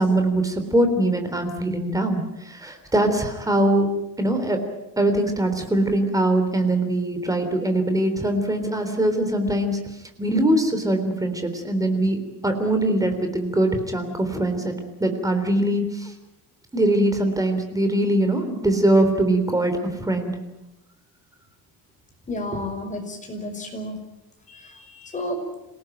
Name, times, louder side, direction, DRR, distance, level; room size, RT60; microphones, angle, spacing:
voice 1, 0.0-3.9 4.2-4.6 5.0-9.8 10.2-14.7 15.0-16.1 16.7-20.4, right 1 dB, 10° right, 6 dB, 3.5 m, -22 dB
voice 2, 22.3-24.0 24.5-25.4, left 1 dB, 20° left, 4 dB, 5.5 m, -32 dB
27.5 x 18.0 x 9.2 m, 0.97 s
cardioid pair, 160°, 37 cm